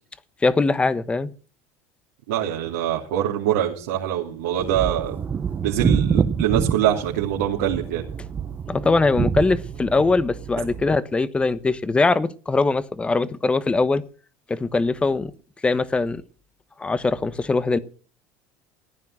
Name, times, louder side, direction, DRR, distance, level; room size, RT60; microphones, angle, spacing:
voice 1, 0.4-1.3 8.7-14.0 14.5-15.3 15.6-16.2 16.8-17.8, left 3 dB, 15° left, 1.1 m, -21 dB
voice 2, 2.3-5.2 5.6-8.1, right 10 dB, 90° right, 2.9 m, -24 dB
sound 1, 4.6-11.0, right 6 dB, 30° right, 1.0 m, -27 dB
15.0 x 9.6 x 6.1 m
supercardioid pair, 110°, 7 cm